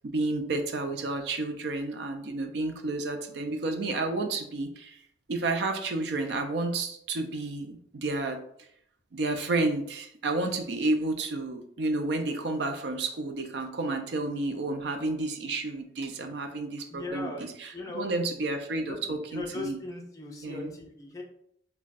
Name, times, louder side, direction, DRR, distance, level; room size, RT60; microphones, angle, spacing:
voice 1, 0.0-5.0 5.3-8.4 9.1-19.8 20.4-20.7, right 2 dB, 65° right, 6 dB, 0.4 m, -31 dB
voice 2, 16.9-17.5 17.7-18.1 18.7-21.2, left 2 dB, 20° left, -1 dB, 0.4 m, -39 dB
2.4 x 2.2 x 3.9 m, 0.69 s
head